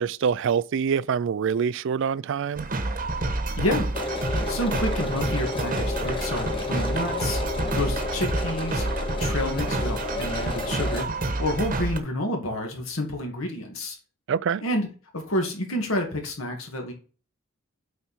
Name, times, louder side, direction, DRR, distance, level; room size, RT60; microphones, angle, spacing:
voice 1, 0.0-2.7 14.3-14.6, right 7 dB, 60° right, 0.4 m, -25 dB
sound 1, 2.6-12.0, right 2 dB, 40° right, 1.1 m, -28 dB
voice 2, 3.6-3.9 4.5-7.4 7.8-8.9 9.2-11.1 11.4-14.0 14.6-14.9 15.1-16.9, left 1 dB, 75° left, 2.2 m, -29 dB
sound 2, 3.9-11.0, left 3 dB, 25° left, 0.9 m, -32 dB
8.2 x 4.6 x 4.4 m
head